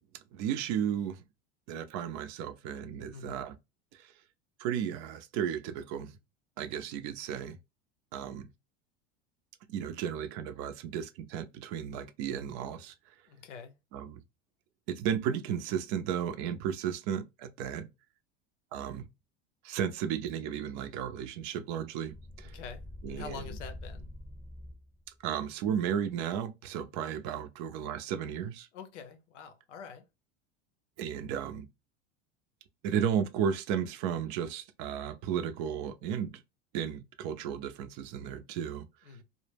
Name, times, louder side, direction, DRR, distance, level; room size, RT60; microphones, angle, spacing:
voice 1, 0.3-1.2 1.7-3.5 3.9-4.1 4.6-6.1 6.6-7.6 8.1-8.5 9.7-12.9 13.9-14.2 14.9-17.9 18.7-19.0 19.6-22.5 23.0-23.6 25.2-28.7 31.0-31.7 32.8-36.4 36.7-38.9, right 8 dB, 55° right, 0.5 m, -34 dB
voice 2, 3.1-3.4 13.3-13.8 22.4-24.1 28.7-30.1 39.0-39.2, left 6 dB, 85° left, 0.7 m, -46 dB
sound 1, 22.1-25.1, left 1 dB, 5° left, 0.7 m, -45 dB
2.1 x 2.0 x 3.2 m
supercardioid pair, 105°, 35 cm